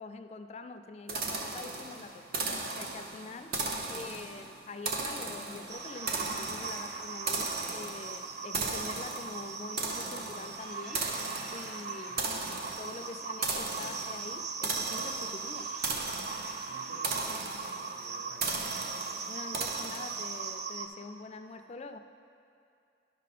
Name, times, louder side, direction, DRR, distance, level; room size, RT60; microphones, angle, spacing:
voice 1, 0.0-3.6 3.9-11.1 11.5-12.3 12.8-15.7 19.3-22.0, left 3 dB, 35° left, 8 dB, 0.3 m, -45 dB
sound 1, 1.1-20.5, right 3 dB, 60° right, 0.7 m, -37 dB
sound 2, 5.3-9.7 10.3-14.3 15.3-19.1, equal, 20° right, 1.1 m, -53 dB
sound 3, 5.7-20.9, right 5 dB, 40° right, 0.4 m, -40 dB
voice 2, 12.0-12.4 16.6-17.5 17.9-18.6, right 1 dB, 80° right, -6 dB, 2.1 m, -54 dB
10.5 x 6.4 x 4.2 m, 2.5 s
head